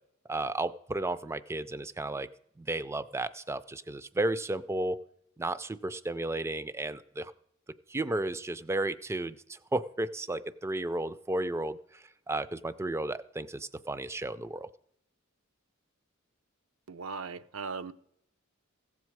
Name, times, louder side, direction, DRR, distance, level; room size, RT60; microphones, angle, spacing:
voice 1, 0.3-2.3 2.6-5.0 5.4-7.3 7.9-14.7, right 2 dB, 15° right, 15 dB, 0.4 m, -33 dB
voice 2, 16.9-17.9, right 5 dB, 75° right, 11 dB, 0.6 m, -38 dB
15.5 x 7.3 x 4.6 m, 0.72 s
head